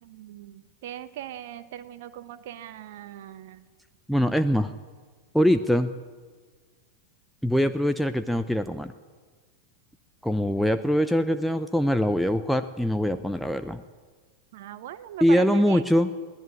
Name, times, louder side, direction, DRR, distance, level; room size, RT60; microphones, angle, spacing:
voice 1, 0.0-3.6 14.5-15.8, right 11 dB, 55° right, 11 dB, 0.9 m, -40 dB
voice 2, 4.1-4.7 5.3-5.9 7.4-8.9 10.2-13.8 15.2-16.1, equal, ahead, 9 dB, 0.7 m, -23 dB
21.5 x 16.5 x 9.9 m, 1.5 s
figure-of-eight pair, 90°, 0 cm